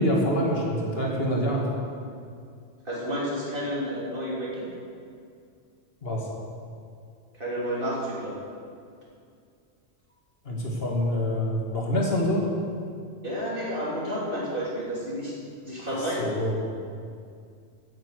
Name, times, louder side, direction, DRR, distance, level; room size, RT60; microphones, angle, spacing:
voice 1, 0.0-1.7 6.0-6.3 10.5-12.4 15.8-16.5, equal, 55° left, -2 dB, 2.3 m, -26 dB
voice 2, 2.9-4.6 7.3-8.4 13.2-15.4 15.6-16.4, equal, 45° right, -5 dB, 3.5 m, -30 dB
15.5 x 9.1 x 6.6 m, 2.3 s
omnidirectional pair, 1.2 m